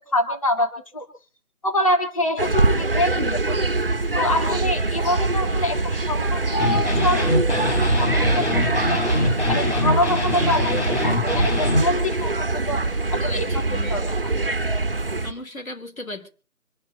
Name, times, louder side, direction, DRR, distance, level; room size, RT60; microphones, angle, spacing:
voice 1, 0.1-1.1 1.6-3.6 4.1-12.3 12.7-12.8 13.1-13.5 13.9-14.0, left 1 dB, 25° left, 4 dB, 1.8 m, -25 dB
sound 1, 2.4-15.3, right 3 dB, 40° right, 2.1 m, -23 dB
sound 2, 6.6-11.8, left 2 dB, 50° left, 3.6 m, -24 dB
voice 2, 13.2-14.4 15.2-16.3, left 1 dB, 70° left, 7 dB, 3.7 m, -37 dB
26.0 x 11.5 x 4.0 m, 0.37 s
figure-of-eight pair, 170°, 43 cm